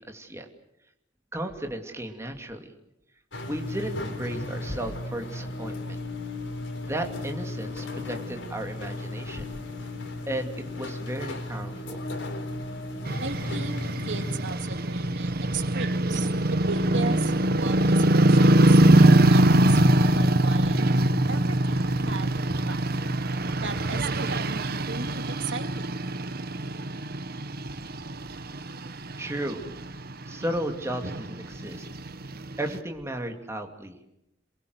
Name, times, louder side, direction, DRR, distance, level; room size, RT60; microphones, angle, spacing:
voice 1, 0.1-0.5 1.3-2.7 3.5-6.0 6.8-9.5 10.3-12.0 29.2-29.6 30.3-31.9 32.6-34.0, right 1 dB, 15° right, 4 dB, 2.6 m, -34 dB
sound 1, 3.3-14.4, left 2 dB, 85° left, 4.0 m, -35 dB
sound 2, 13.0-32.8, right 1 dB, 55° right, 1.2 m, -23 dB
voice 2, 13.2-18.8 19.3-20.8 21.3-22.8 23.6-26.0, right 4 dB, 80° right, 7 dB, 2.2 m, -37 dB
27.5 x 22.5 x 8.0 m, 0.85 s
head